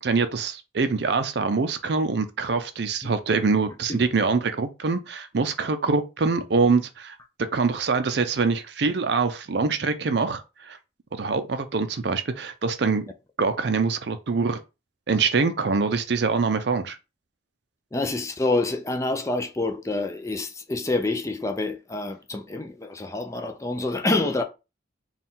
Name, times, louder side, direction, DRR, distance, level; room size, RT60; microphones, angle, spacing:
voice 1, 0.0-10.8 11.1-13.0 13.4-14.6 15.1-17.0, right 4 dB, 60° right, 0.5 m, -24 dB
voice 2, 17.9-24.4, left 2 dB, 15° left, 0.4 m, -27 dB
4.2 x 2.4 x 3.7 m
head